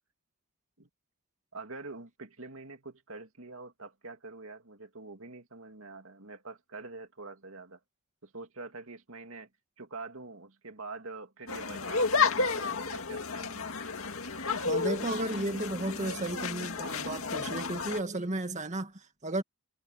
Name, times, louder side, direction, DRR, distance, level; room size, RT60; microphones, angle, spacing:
voice 1, 1.5-7.8 8.2-9.5 9.8-13.7, right 3 dB, 65° right, 2.5 m, -45 dB
sound 1, 11.5-18.0, left 4 dB, 70° left, 2.3 m, -31 dB
voice 2, 14.7-19.4, right 1 dB, 30° right, 1.9 m, -34 dB
head